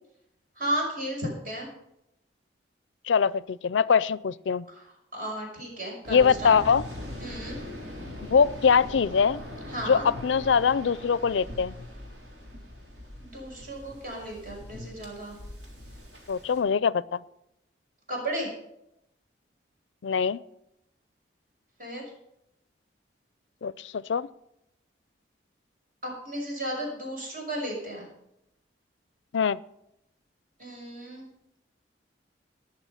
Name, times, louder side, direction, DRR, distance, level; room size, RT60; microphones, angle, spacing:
voice 1, 0.6-1.7 4.7-4.8 5.1-6.6 7.2-7.6 9.7-10.1 13.2-15.4 18.1-18.5 21.8-22.0 26.0-28.1 30.6-31.3, right 1 dB, 45° right, -1 dB, 5.8 m, -34 dB
voice 2, 3.1-4.7 6.1-6.8 8.3-9.4 9.9-11.7 16.3-17.2 20.0-20.4 23.6-24.3 29.3-29.6, left 6 dB, 85° left, 19 dB, 0.4 m, -23 dB
Waves surf, 6.0-16.6, left 1 dB, 70° right, 3.5 m, -41 dB
19.5 x 6.7 x 5.7 m, 0.82 s
head